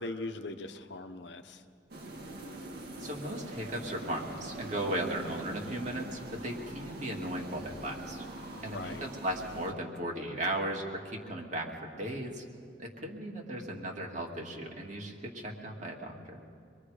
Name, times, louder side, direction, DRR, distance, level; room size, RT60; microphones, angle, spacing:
voice 1, 0.0-1.6 8.5-9.1, left 2 dB, 70° left, 7 dB, 1.0 m, -40 dB
sound 1, 1.9-9.7, right 1 dB, 55° right, 2.1 m, -43 dB
voice 2, 3.0-8.2 8.6-12.5 12.8-16.4, right 1 dB, 40° right, 0 dB, 2.3 m, -36 dB
26.0 x 21.5 x 5.0 m, 2.2 s
head